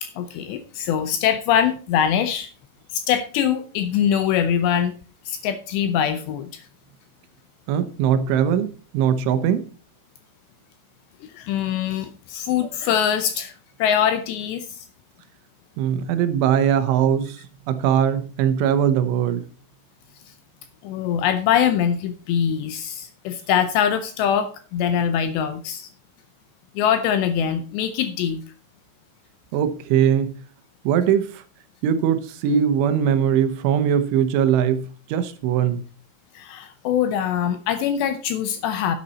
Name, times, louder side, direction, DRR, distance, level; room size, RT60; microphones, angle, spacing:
voice 1, 0.0-2.5 2.9-4.9 5.3-6.6 11.3-13.5 13.8-14.9 20.8-25.9 26.8-28.4 36.4-39.0, left 9 dB, 80° left, 10 dB, 2.6 m, -23 dB
voice 2, 7.7-9.6 15.8-17.4 17.7-19.4 29.5-30.4 30.8-31.4 31.8-35.8, right 8 dB, 80° right, 11 dB, 3.3 m, -21 dB
10.5 x 9.0 x 4.2 m, 0.38 s
omnidirectional pair, 5.6 m